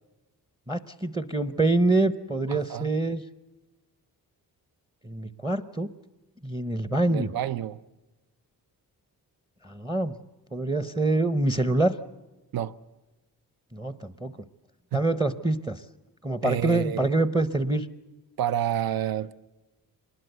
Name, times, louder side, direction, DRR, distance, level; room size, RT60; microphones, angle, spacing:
voice 1, 0.7-3.2 5.0-5.9 6.4-7.3 9.6-10.1 10.5-12.0 13.7-14.3 14.9-15.8 16.2-17.9, right 2 dB, 10° right, 0.7 m, -25 dB
voice 2, 2.5-2.9 7.0-7.8 12.5-12.7 14.9-15.0 16.4-17.2 18.4-19.4, right 10 dB, 70° right, 0.8 m, -29 dB
24.5 x 20.5 x 7.9 m
wide cardioid pair, 155°, 37 cm